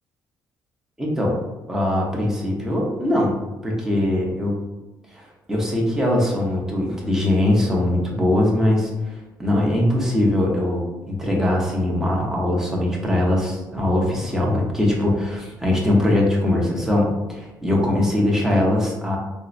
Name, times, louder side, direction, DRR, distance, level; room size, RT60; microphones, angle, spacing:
voice 1, 1.0-1.4 1.7-4.6 5.1-5.2 5.5-8.9 9.4-19.2, left 1 dB, 5° right, -2 dB, 0.8 m, -21 dB
4.4 x 2.0 x 2.5 m, 1.1 s
cardioid pair, 120°, 7 cm